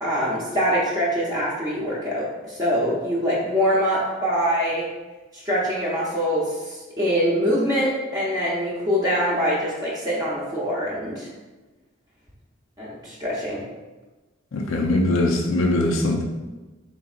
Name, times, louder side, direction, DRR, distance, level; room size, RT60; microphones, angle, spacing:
voice 1, 0.0-4.9 5.3-11.3 12.8-13.6, equal, 20° right, -6 dB, 0.7 m, -24 dB
voice 2, 14.5-16.2, left 2 dB, 80° left, 1 dB, 0.5 m, -21 dB
3.9 x 3.9 x 2.4 m, 1.2 s
head